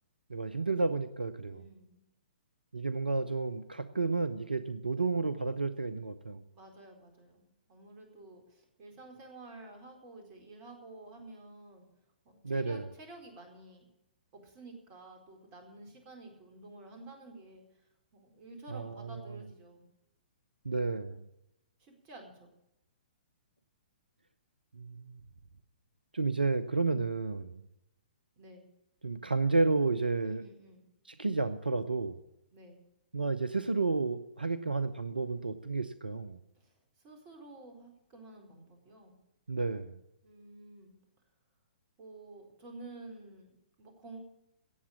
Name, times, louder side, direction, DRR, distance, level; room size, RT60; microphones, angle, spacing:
voice 1, 0.3-1.6 2.7-6.4 12.4-12.9 18.7-19.4 20.6-21.2 24.7-25.2 26.1-27.6 29.0-30.4 31.2-32.2 33.1-36.4 39.5-39.9, right 3 dB, 80° right, 13 dB, 0.8 m, -31 dB
voice 2, 1.5-2.0 6.5-11.9 12.2-13.9 14.4-17.6 18.1-19.9 21.8-22.5 28.4-28.7 30.2-30.9 32.5-32.8 36.6-36.8 37.0-39.1 40.2-40.9 42.0-44.2, right 2 dB, 30° right, 4 dB, 4.2 m, -51 dB
17.0 x 7.3 x 8.6 m, 0.88 s
figure-of-eight pair, 120°, 5 cm